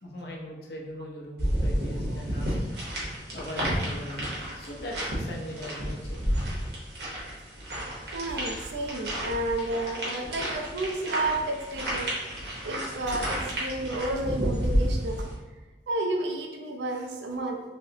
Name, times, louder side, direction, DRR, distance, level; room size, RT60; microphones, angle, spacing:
voice 1, 0.0-2.6 3.3-6.2, equal, 65° left, -1 dB, 0.6 m, -40 dB
sound 1, 1.4-15.3, equal, 70° right, 1.0 m, -31 dB
voice 2, 8.1-12.1 12.6-15.3 15.9-17.6, right 2 dB, 85° right, 3 dB, 0.5 m, -31 dB
3.1 x 2.9 x 2.7 m, 1.2 s
head